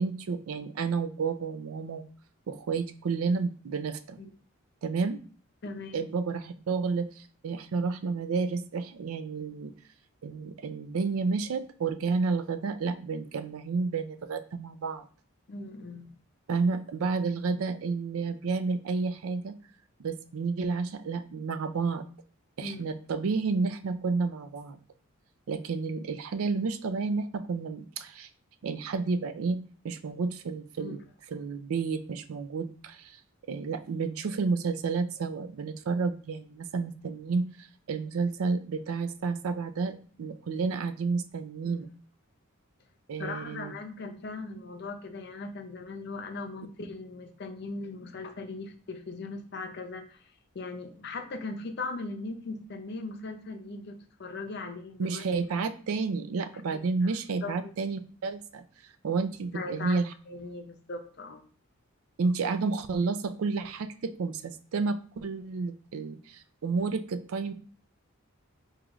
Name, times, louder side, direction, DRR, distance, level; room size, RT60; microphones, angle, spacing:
voice 1, 0.0-2.0 2.5-4.2 4.8-5.2 5.9-9.7 10.2-15.0 16.5-19.5 20.0-22.1 22.6-24.8 25.5-28.3 28.6-29.6 29.8-31.0 31.3-33.2 33.5-37.5 37.9-41.9 43.1-43.7 55.0-58.6 59.0-60.1 62.2-67.5, right 4 dB, 80° right, 11 dB, 0.4 m, -31 dB
voice 2, 5.6-6.0 15.5-16.1 22.6-22.8 30.8-31.0 41.6-41.8 43.2-50.2 50.5-55.2 56.7-56.8 57.4-57.5 59.5-60.0 60.3-61.4, left 3 dB, 50° left, 6 dB, 0.5 m, -39 dB
4.7 x 2.4 x 3.0 m, 0.43 s
head